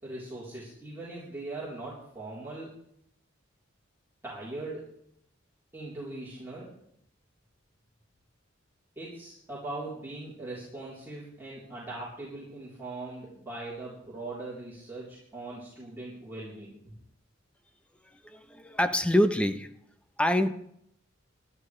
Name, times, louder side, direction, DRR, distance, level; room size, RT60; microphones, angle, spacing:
voice 1, 0.0-2.7 4.2-4.9 5.7-6.7 9.0-16.7, right 2 dB, 10° right, -8 dB, 3.6 m, -40 dB
voice 2, 18.2-19.7 20.2-20.5, equal, 5° left, 9 dB, 0.8 m, -25 dB
23.5 x 12.0 x 3.3 m, 0.72 s
head